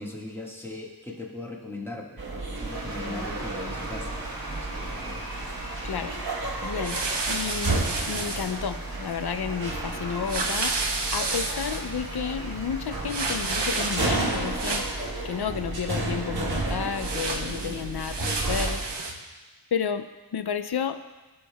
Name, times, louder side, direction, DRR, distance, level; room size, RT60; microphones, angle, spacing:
voice 1, 0.0-2.2 2.4-5.2, left 2 dB, 5° left, -3 dB, 1.6 m, -39 dB
sound 1, 2.2-18.9, right 2 dB, 60° right, 1.3 m, -32 dB
Cheering / Applause / Crowd, 2.5-18.1, right 1 dB, 45° right, 1.9 m, -42 dB
voice 2, 5.8-6.2 6.6-7.0 7.3-10.8 11.1-18.8 19.7-21.0, left 7 dB, 70° left, 10 dB, 0.5 m, -31 dB
sound 2, 6.8-8.5 10.3-11.8 13.1-14.2 14.5-15.1 16.9-19.1, right 3 dB, 80° right, 0.9 m, -30 dB
14.0 x 6.7 x 2.3 m, 1.2 s
wide cardioid pair, 45°, 41 cm